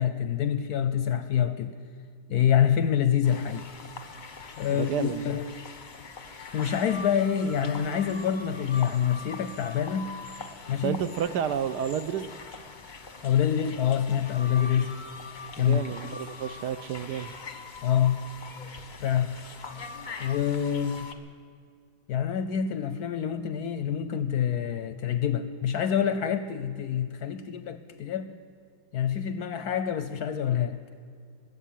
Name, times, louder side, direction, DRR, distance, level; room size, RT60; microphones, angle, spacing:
voice 1, 0.0-1.8 2.3-3.6 4.6-5.5 6.5-10.2 10.7-11.0 13.2-14.9 15.6-15.8 17.8-18.2 19.0-19.3 20.2-21.1 22.1-28.3 28.9-30.8, left 9 dB, 70° left, 11 dB, 1.0 m, -26 dB
sound 1, 3.2-21.1, left 4 dB, 40° left, 0.7 m, -42 dB
voice 2, 4.7-5.2 10.8-12.3 15.6-17.3, right 9 dB, 70° right, 11 dB, 1.0 m, -30 dB
21.0 x 8.3 x 7.5 m, 2.2 s
omnidirectional pair, 2.1 m